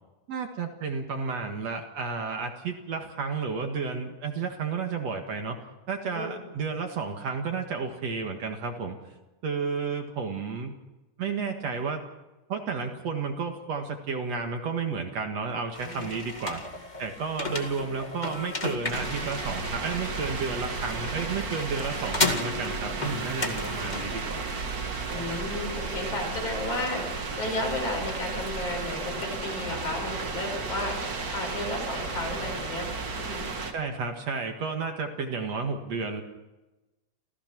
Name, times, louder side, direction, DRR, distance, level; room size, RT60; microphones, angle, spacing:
voice 1, 0.3-5.6 5.9-9.0 9.4-10.7 11.2-12.1 12.5-16.6 17.0-24.5 33.7-36.2, right 5 dB, 55° right, 4 dB, 2.6 m, -32 dB
sound 1, 15.7-29.3, left 2 dB, 20° left, 1.3 m, -36 dB
voice 2, 15.8-16.1 25.1-32.9 33.2-33.5, left 2 dB, 60° left, 1 dB, 7.3 m, -33 dB
sound 2, 18.9-33.7, right 4 dB, 35° right, 1.6 m, -34 dB
28.5 x 15.5 x 6.1 m, 1.0 s
omnidirectional pair, 3.8 m